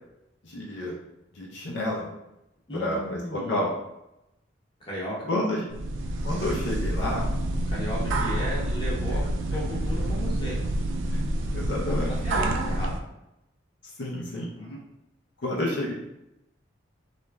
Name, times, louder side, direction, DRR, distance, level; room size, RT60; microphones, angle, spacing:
voice 1, 0.4-1.0 1.3-2.1 2.7-3.7 5.3-5.6 6.2-7.3 11.1-11.2 11.5-12.2 14.0-14.5 15.4-15.9, left 1 dB, 70° left, -4 dB, 0.6 m, -29 dB
voice 2, 2.7-3.7 4.8-5.3 7.7-9.2 9.5-10.6 12.1-13.0 14.5-14.8, equal, 25° left, -6 dB, 0.8 m, -34 dB
sound 1, 5.7-13.0, right 1 dB, 85° right, 0.3 m, -28 dB
3.0 x 2.4 x 2.2 m, 0.90 s
head